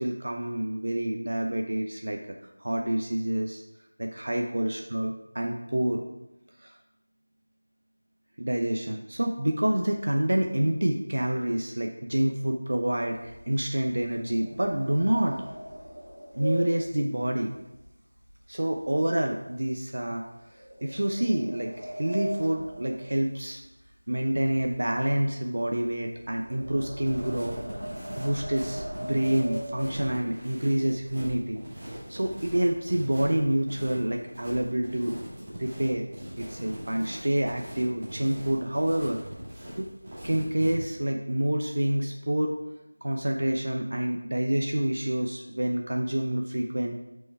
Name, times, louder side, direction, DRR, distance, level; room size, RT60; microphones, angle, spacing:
voice 1, 0.0-2.2 2.6-3.6 4.0-6.0 6.6-6.7 8.4-15.4 16.3-17.5 18.5-20.2 20.8-23.6 24.1-27.6 28.2-31.6 32.1-35.1 35.6-36.1 36.4-39.2 39.8-39.9 40.2-42.6 43.0-46.9, right 1 dB, 55° right, 2 dB, 0.8 m, -27 dB
sound 1, 13.1-18.5 18.8-19.1 19.6-19.7 20.6-23.9 24.1-30.4 31.0-31.1 31.4-31.7 32.0-32.6, equal, 90° right, 2.0 m, -40 dB
sound 2, 27.0-40.7, equal, 20° right, 2.2 m, -41 dB
6.4 x 5.5 x 4.6 m, 0.91 s
figure-of-eight pair, 170°, 0 cm